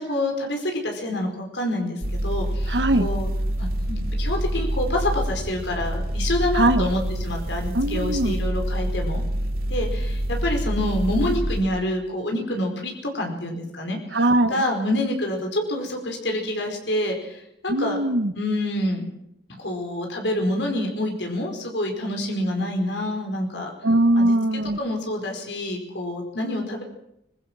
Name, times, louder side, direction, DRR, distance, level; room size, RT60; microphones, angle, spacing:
voice 1, 0.0-3.3 3.6-9.2 9.7-14.0 14.5-18.0 18.3-19.0 19.6-23.7 24.2-24.4 24.8-26.8, left 1 dB, 80° left, 2 dB, 4.8 m, -27 dB
sound 1, 2.0-11.6, right 1 dB, 55° right, 2.4 m, -26 dB
voice 2, 2.7-3.1 6.5-6.9 7.7-8.4 14.1-14.6 17.7-18.3 23.8-24.8, right 1 dB, 75° right, 10 dB, 1.1 m, -20 dB
25.0 x 21.5 x 6.2 m, 0.80 s
head